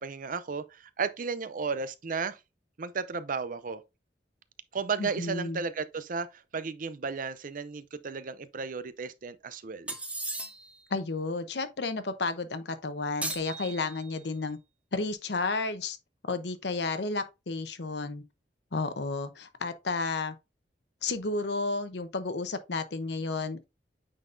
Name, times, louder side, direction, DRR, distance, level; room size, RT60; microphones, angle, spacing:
voice 1, 0.0-2.4 2.8-3.8 4.7-10.0, right 5 dB, 50° right, 0.6 m, -34 dB
voice 2, 5.0-5.6 10.9-14.6 14.9-16.0 16.3-18.2 18.7-20.3 21.0-23.6, left 3 dB, 75° left, 0.8 m, -32 dB
sound 1, 9.9-10.8 13.2-14.3, right 2 dB, 10° right, 0.9 m, -37 dB
9.0 x 4.0 x 2.6 m
head